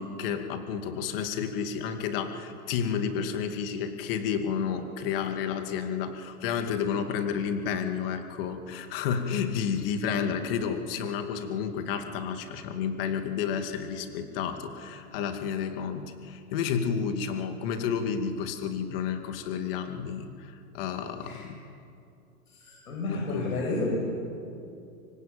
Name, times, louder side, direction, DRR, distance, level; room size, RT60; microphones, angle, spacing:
voice 1, 0.0-21.6 23.1-23.7, left 7 dB, 40° left, 6 dB, 2.5 m, -31 dB
voice 2, 22.6-24.0, left 2 dB, 80° left, -1 dB, 7.9 m, -31 dB
25.0 x 24.5 x 9.0 m, 2.5 s
hypercardioid pair, 150°, 43 cm